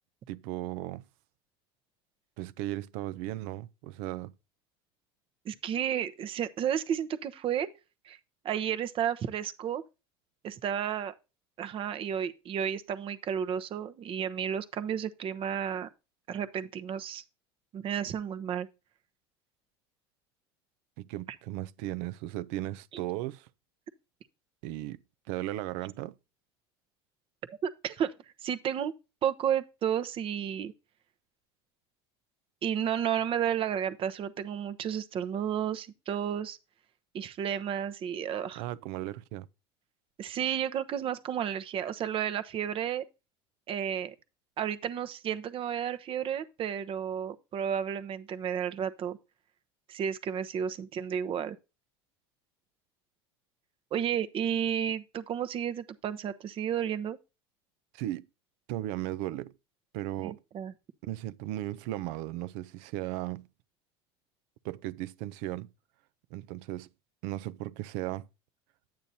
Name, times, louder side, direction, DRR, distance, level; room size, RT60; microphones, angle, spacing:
voice 1, 0.3-1.1 2.4-4.3 21.0-23.5 24.6-25.0 25.3-26.1 38.6-39.5 57.9-58.3 58.7-59.5 59.9-60.4 61.0-63.5 64.6-65.7 66.3-66.9 67.2-68.3, right 15 dB, 65° right, 0.6 m, -36 dB
voice 2, 5.4-7.7 8.0-8.2 8.4-9.8 10.4-11.1 11.6-15.9 16.3-17.2 17.7-18.7 27.5-28.9 29.2-30.7 32.6-36.6 37.1-38.6 40.2-43.1 43.7-44.1 44.6-49.2 49.9-51.6 53.9-57.2 60.2-60.7, right 9 dB, 40° right, 0.9 m, -32 dB
10.5 x 8.9 x 2.8 m
supercardioid pair, 100°, 14 cm